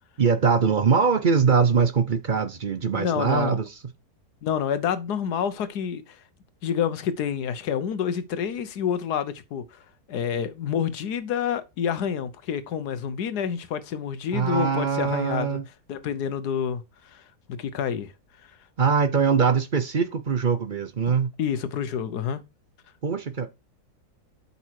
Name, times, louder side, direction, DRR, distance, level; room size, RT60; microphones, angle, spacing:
voice 1, 0.2-3.7 14.3-15.7 18.8-21.3 23.0-23.5, right 5 dB, 45° right, 0.7 m, -22 dB
voice 2, 2.9-3.6 4.4-6.2 6.6-9.8 10.1-15.6 15.9-17.2 17.5-18.1 21.4-22.4, left 8 dB, 90° left, 1.5 m, -28 dB
8.3 x 5.5 x 4.7 m
omnidirectional pair, 1.6 m